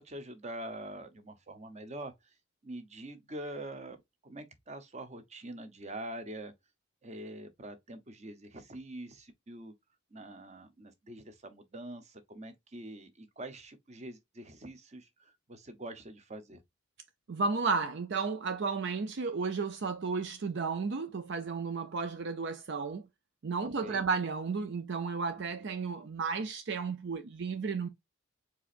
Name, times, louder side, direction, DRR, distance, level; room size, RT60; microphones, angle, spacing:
voice 1, 0.0-2.1 2.6-6.5 7.0-9.7 10.1-16.6 23.8-24.0, right 1 dB, 35° right, 0.9 m, -44 dB
voice 2, 17.3-23.1 23.4-27.9, right 4 dB, 60° right, 0.5 m, -33 dB
4.7 x 4.1 x 2.5 m
head